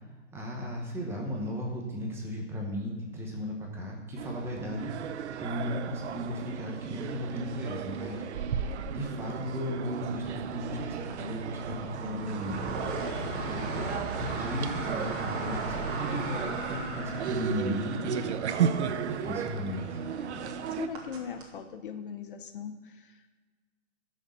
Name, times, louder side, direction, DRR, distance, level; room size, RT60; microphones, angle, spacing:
voice 1, 0.3-8.6 8.9-13.1 13.4-18.4 18.9-20.0, equal, 5° right, -1 dB, 0.9 m, -36 dB
sound 1, 4.2-20.9, right 7 dB, 60° right, 0.7 m, -35 dB
sound 2, 10.0-21.5, right 2 dB, 40° right, 2.1 m, -38 dB
voice 2, 20.7-23.3, left 7 dB, 45° left, 9 dB, 0.7 m, -40 dB
13.0 x 6.5 x 5.6 m, 1.4 s
hypercardioid pair, 160°, 38 cm